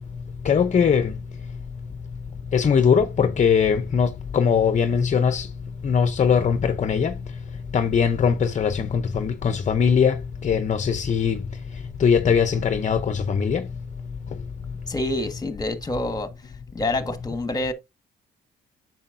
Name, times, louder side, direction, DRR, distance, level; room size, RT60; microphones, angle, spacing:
voice 1, 0.5-1.1 2.5-4.1 4.3-5.4 5.8-7.1 7.7-10.1 10.4-11.4 12.0-13.6, left 6 dB, 40° left, 0.6 m, -20 dB
voice 2, 14.9-16.3 16.7-17.7, left 2 dB, 20° left, 1.5 m, -27 dB
8.7 x 6.2 x 2.6 m
cardioid pair, 90°, 20 cm